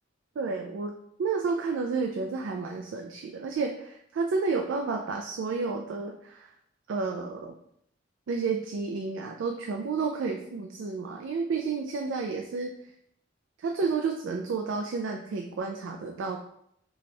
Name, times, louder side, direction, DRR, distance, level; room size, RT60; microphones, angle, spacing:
voice 1, 0.4-0.9 1.2-6.5 6.9-7.5 8.3-12.9 13.6-16.4, right 4 dB, 85° right, 3 dB, 0.4 m, -31 dB
4.1 x 2.3 x 3.2 m, 0.72 s
head